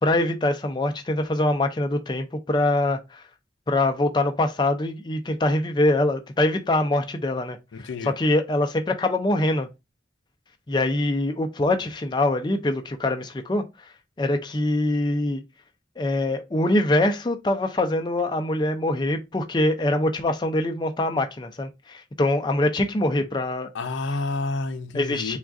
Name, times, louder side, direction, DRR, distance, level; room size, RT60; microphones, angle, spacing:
voice 1, 0.0-3.2 3.7-7.6 8.0-9.7 10.7-13.6 14.2-15.4 16.0-23.7 24.9-25.4, left 1 dB, 25° left, 0.4 m, -24 dB
voice 2, 7.7-8.1 23.7-25.4, left 3 dB, 85° left, 0.5 m, -29 dB
3.6 x 2.3 x 2.4 m
head